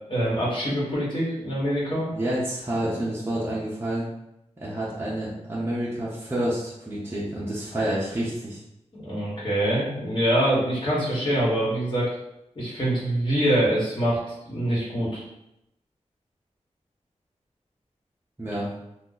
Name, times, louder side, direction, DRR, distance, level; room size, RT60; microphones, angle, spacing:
voice 1, 0.1-2.1 9.0-12.1 12.5-14.2 14.5-15.2, right 1 dB, 45° left, -7 dB, 1.3 m, -24 dB
voice 2, 2.1-4.0 4.6-8.6 18.4-18.7, right 1 dB, 20° right, -7 dB, 0.6 m, -28 dB
2.7 x 2.4 x 3.8 m, 0.85 s
wide cardioid pair, 110°, 12 cm